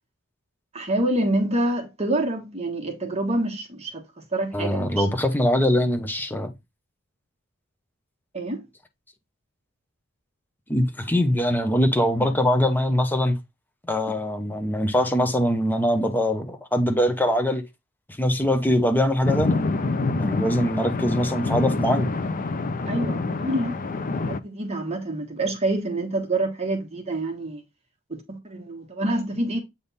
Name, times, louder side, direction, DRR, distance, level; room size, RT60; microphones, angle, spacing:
voice 1, 0.7-4.0 4.3-5.1 8.3-8.6 12.2-12.3 14.1-14.2 22.9-27.6 28.1-29.6, right 1 dB, 30° right, 1.5 m, -27 dB
voice 2, 4.5-6.5 10.7-13.4 13.9-17.7 18.2-19.6 20.2-22.1, equal, 10° left, 0.8 m, -22 dB
sound 1, 19.2-24.4, left 3 dB, 40° left, 0.5 m, -26 dB
8.4 x 3.6 x 4.1 m
head